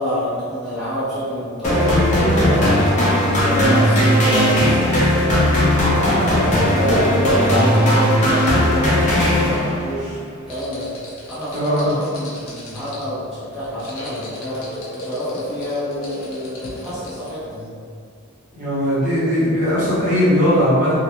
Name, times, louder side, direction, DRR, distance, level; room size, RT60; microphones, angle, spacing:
voice 1, 0.0-10.2 10.5-10.9 11.3-14.7 15.0-17.7, equal, ahead, -15 dB, 0.7 m, -27 dB
sound 1, 1.6-10.0, equal, 35° left, 0.5 m, -17 dB
sound 2, 10.5-17.5, left 1 dB, 75° left, 0.7 m, -35 dB
voice 2, 11.5-11.9 18.5-20.9, equal, 40° right, -11 dB, 0.9 m, -18 dB
2.3 x 2.2 x 2.9 m, 2.2 s
head